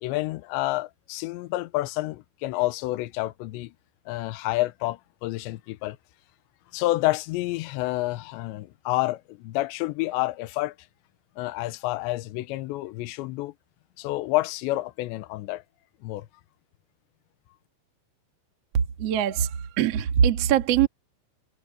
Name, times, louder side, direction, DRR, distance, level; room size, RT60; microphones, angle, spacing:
voice 1, 0.0-3.7 4.1-6.0 6.7-10.7 11.4-13.5 14.0-15.6 16.0-16.3, left 18 dB, 80° left, 2.9 m, -29 dB
voice 2, 18.7-20.9, right 9 dB, 70° right, 1.5 m, -22 dB
omnidirectional pair, 5.6 m